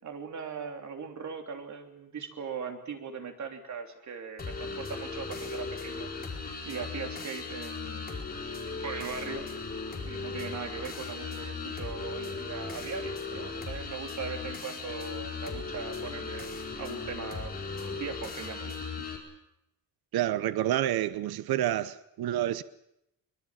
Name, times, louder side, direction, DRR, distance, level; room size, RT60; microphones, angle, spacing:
voice 1, 0.0-6.1 6.6-8.1 8.7-9.5 10.0-17.5 17.9-19.0, right 5 dB, 50° right, 3.4 m, -39 dB
sound 1, 4.4-19.2, left 4 dB, 25° left, 4.6 m, -37 dB
voice 2, 20.1-22.6, right 13 dB, 85° right, 1.0 m, -28 dB
24.0 x 22.0 x 7.6 m
cardioid pair, 145°, 36 cm